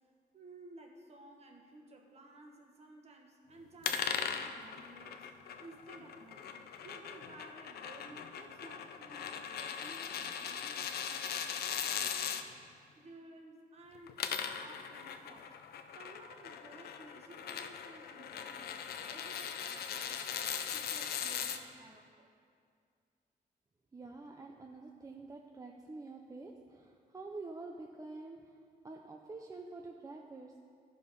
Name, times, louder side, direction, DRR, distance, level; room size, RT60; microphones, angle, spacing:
voice 1, 0.3-5.3 5.6-6.4 6.8-11.4 11.7-12.6 12.9-15.6 15.9-20.2 20.5-22.3, right 2 dB, 45° right, 2 dB, 1.3 m, -55 dB
sound 1, 3.8-12.4 14.0-21.6, left 8 dB, 85° left, 0.5 m, -39 dB
voice 2, 23.9-28.6 28.8-30.5, right 3 dB, 20° right, 1 dB, 0.5 m, -47 dB
12.5 x 5.2 x 5.3 m, 2.2 s
cardioid pair, 130°, 16 cm